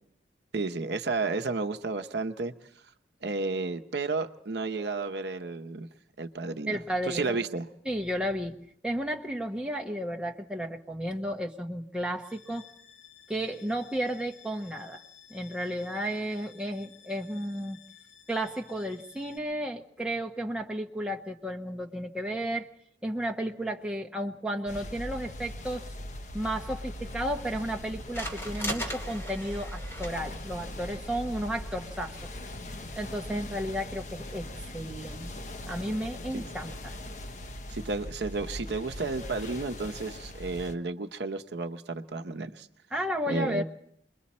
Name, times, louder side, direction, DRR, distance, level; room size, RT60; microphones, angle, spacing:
voice 1, 0.5-2.5 3.2-5.9 6.2-6.8 7.1-7.7 37.7-42.7 43.3-43.6, right 3 dB, 75° right, 7 dB, 0.8 m, -32 dB
voice 2, 6.7-7.4 7.8-8.6 8.8-12.6 13.3-15.0 15.3-17.8 18.3-22.7 23.0-25.9 26.3-32.3 33.0-35.3 35.7-36.9 42.9-43.6, equal, 5° right, 1 dB, 1.0 m, -33 dB
sound 1, 12.2-19.4, left 9 dB, 80° left, 6.5 m, -55 dB
sound 2, 24.7-40.8, left 1 dB, 40° left, 0.9 m, -40 dB
sound 3, 26.5-33.4, equal, 15° left, 2.5 m, -42 dB
28.0 x 22.0 x 4.3 m, 0.69 s
head